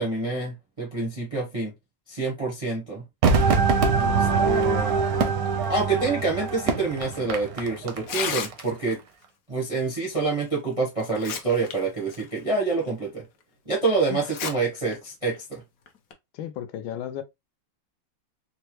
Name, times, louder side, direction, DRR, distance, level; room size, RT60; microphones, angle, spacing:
voice 1, 0.0-1.7 2.1-3.0 4.2-5.0 5.7-9.0 9.5-13.2 13.7-15.6, right 3 dB, 35° right, 0.5 m, -27 dB
Crowd / Fireworks, 3.2-8.6 8.9-9.0, right 4 dB, 65° right, 1.0 m, -26 dB
sound 1, 3.3-7.3, right 5 dB, 80° right, 1.3 m, -26 dB
voice 2, 3.9-4.5 14.1-14.2 16.3-17.2, left 11 dB, 85° left, 1.4 m, -34 dB
Tearing, 8.0-8.9 10.4-10.5 11.0-11.7 12.1-12.2 12.9-13.0 14.2-14.5 14.9-15.0 15.9-16.1, left 7 dB, 65° left, 0.9 m, -32 dB
4.3 x 2.1 x 2.9 m
omnidirectional pair, 2.2 m